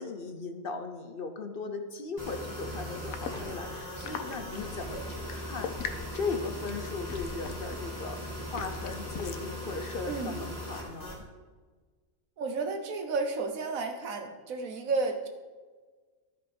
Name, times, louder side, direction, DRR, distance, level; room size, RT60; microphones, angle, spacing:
voice 1, 0.0-5.7 6.1-11.3, left 4 dB, 50° left, 6 dB, 0.8 m, -38 dB
sound 1, 2.2-11.2, equal, 15° right, 2.7 m, -39 dB
sound 2, 2.9-9.5, left 7 dB, 75° left, 1.2 m, -43 dB
voice 2, 4.5-5.0 10.1-10.3 12.4-15.3, right 3 dB, 75° right, 6 dB, 1.4 m, -32 dB
13.5 x 5.3 x 5.2 m, 1.4 s
omnidirectional pair, 1.5 m